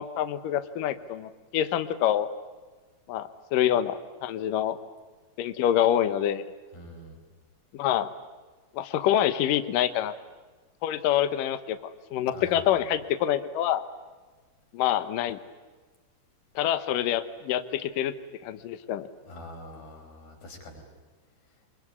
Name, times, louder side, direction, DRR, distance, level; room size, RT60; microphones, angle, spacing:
voice 1, 0.0-2.3 3.1-4.8 5.4-6.4 7.7-8.1 8.7-10.1 10.8-11.8 12.1-13.8 14.7-15.4 16.6-18.1 18.4-19.1, left 11 dB, 85° left, 10 dB, 1.9 m, -26 dB
voice 2, 6.7-7.2 12.3-12.6 19.3-20.8, left 1 dB, 50° left, 2 dB, 6.4 m, -44 dB
25.5 x 23.0 x 9.8 m, 1.4 s
omnidirectional pair, 5.6 m